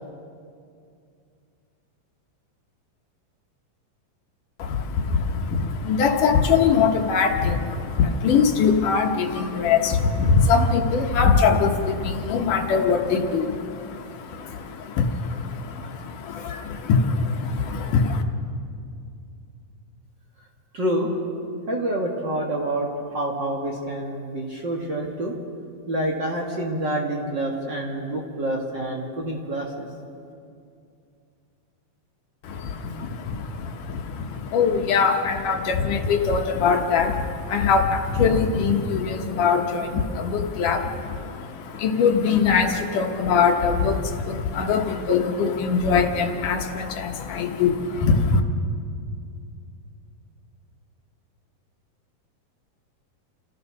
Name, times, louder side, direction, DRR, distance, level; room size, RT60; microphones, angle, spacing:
voice 1, 4.6-18.2 32.4-48.4, left 5 dB, 70° left, 3 dB, 2.6 m, -22 dB
voice 2, 20.7-21.1 21.7-25.4 25.9-29.9, right 1 dB, 40° right, -1 dB, 1.9 m, -27 dB
29.0 x 15.0 x 6.3 m, 2.4 s
omnidirectional pair, 4.0 m